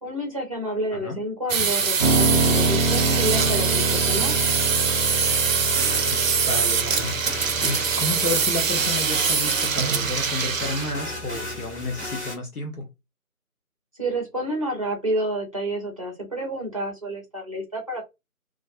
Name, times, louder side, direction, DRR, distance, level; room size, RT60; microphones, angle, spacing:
voice 1, 0.0-4.3 13.9-18.0, right 1 dB, 25° right, 0.6 m, -29 dB
voice 2, 0.9-1.2 6.1-7.2 7.6-12.9, left 2 dB, 80° left, 0.9 m, -31 dB
sound 1, 1.5-10.9, right 6 dB, 65° right, 0.5 m, -23 dB
Piano, 2.0-12.1, right 2 dB, 25° left, 1.1 m, -28 dB
sound 2, 5.7-12.4, left 1 dB, 50° left, 1.4 m, -37 dB
2.4 x 2.0 x 2.5 m
figure-of-eight pair, 160°, 44 cm